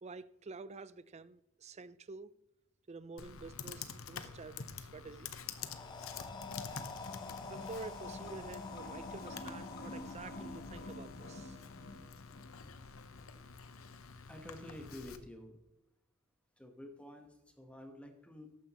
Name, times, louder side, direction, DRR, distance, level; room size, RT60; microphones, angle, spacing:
voice 1, 0.0-2.3 2.9-5.3 6.7-6.9 7.4-11.6, right 4 dB, 35° right, 0.5 m, -49 dB
Computer keyboard, 3.2-15.2, left 6 dB, 90° left, 0.9 m, -48 dB
sound 1, 5.5-11.4, left 4 dB, 20° left, 0.7 m, -49 dB
sound 2, 6.3-12.6, left 2 dB, 50° left, 1.1 m, -48 dB
voice 2, 14.0-15.6 16.6-18.6, left 1 dB, 5° left, 1.2 m, -50 dB
13.5 x 9.5 x 3.0 m
head